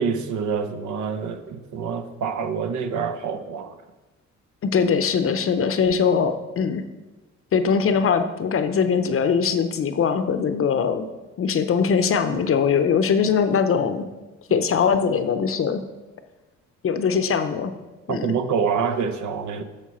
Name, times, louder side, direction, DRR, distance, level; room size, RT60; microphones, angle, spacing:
voice 1, 0.0-3.8 18.1-19.6, right 6 dB, 70° right, 9 dB, 0.8 m, -26 dB
voice 2, 4.6-6.8 7.5-11.1 11.4-14.1 14.5-15.8 16.8-17.7 18.1-18.3, left 6 dB, 45° left, 9 dB, 0.6 m, -21 dB
7.3 x 6.6 x 4.2 m, 1.1 s
cardioid pair, 90°, 30 cm